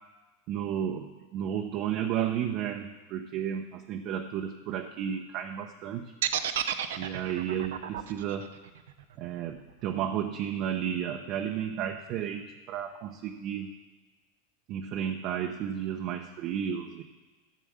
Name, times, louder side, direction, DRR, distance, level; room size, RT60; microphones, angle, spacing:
voice 1, 0.5-6.1 7.0-8.6 9.2-13.7 14.7-17.0, right 9 dB, 45° right, 3 dB, 0.9 m, -33 dB
sound 1, 6.2-10.3, right 10 dB, 80° right, 0.7 m, -32 dB
13.0 x 7.0 x 6.4 m, 1.2 s
hypercardioid pair, 120°, 0 cm